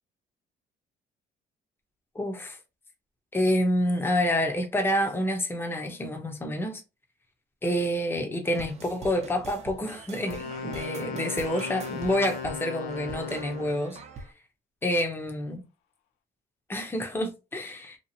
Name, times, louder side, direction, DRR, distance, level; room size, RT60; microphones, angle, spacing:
voice 1, 2.1-2.6 3.3-6.8 7.6-14.0 14.8-15.6 16.7-18.0, equal, 15° left, 0.7 m, -28 dB
sound 1, 8.4-14.3, right 4 dB, 40° right, 0.6 m, -43 dB
Wind instrument woodwind instrument, 10.2-14.0, left 5 dB, 90° left, 0.4 m, -37 dB
2.9 x 2.4 x 2.7 m
cardioid pair, 110°, 17 cm